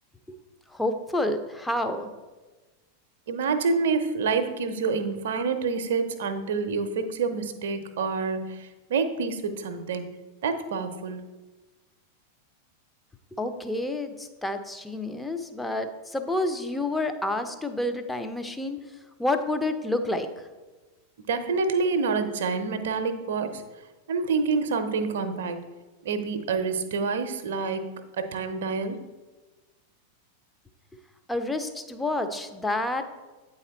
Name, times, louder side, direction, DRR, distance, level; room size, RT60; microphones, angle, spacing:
voice 1, 0.7-2.1 13.3-18.8 19.2-20.3 31.3-33.1, left 2 dB, 5° left, 7 dB, 0.6 m, -29 dB
voice 2, 3.3-10.1 10.4-11.2 21.3-23.6 24.1-25.6 26.0-29.0, right 4 dB, 60° right, 9 dB, 0.6 m, -27 dB
8.5 x 4.2 x 3.9 m, 1.2 s
figure-of-eight pair, 90°, 0 cm